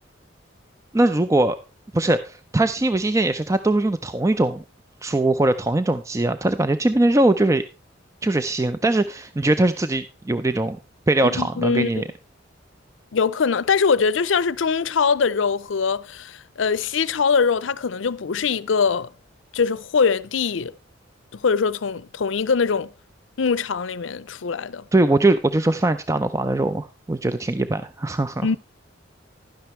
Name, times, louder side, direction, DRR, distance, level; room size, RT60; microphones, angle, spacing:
voice 1, 0.9-1.6 1.9-4.6 5.0-7.6 8.2-10.8 11.1-12.1 24.9-28.5, right 2 dB, 15° right, 0.4 m, -21 dB
voice 2, 11.4-12.0 13.1-19.1 19.5-20.7 21.3-22.9 23.4-24.8 28.4-28.6, left 5 dB, 90° left, 0.6 m, -22 dB
12.0 x 10.5 x 3.1 m
head